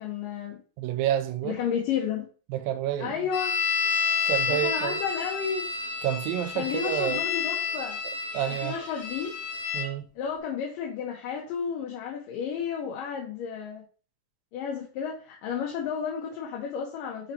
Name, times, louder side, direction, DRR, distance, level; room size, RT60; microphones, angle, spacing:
voice 1, 0.0-0.6 1.4-2.3 3.0-3.6 4.5-5.7 6.6-8.0 8.5-9.3 10.2-13.8 14.5-17.3, left 7 dB, 75° left, 2.6 m, -32 dB
voice 2, 0.8-1.6 2.5-3.3 4.3-5.0 6.0-7.3 8.3-8.8 9.7-10.1, right 12 dB, 85° right, 2.4 m, -29 dB
sound 1, 3.3-9.9, left 6 dB, 50° left, 1.0 m, -30 dB
5.9 x 4.2 x 4.1 m
omnidirectional pair, 4.0 m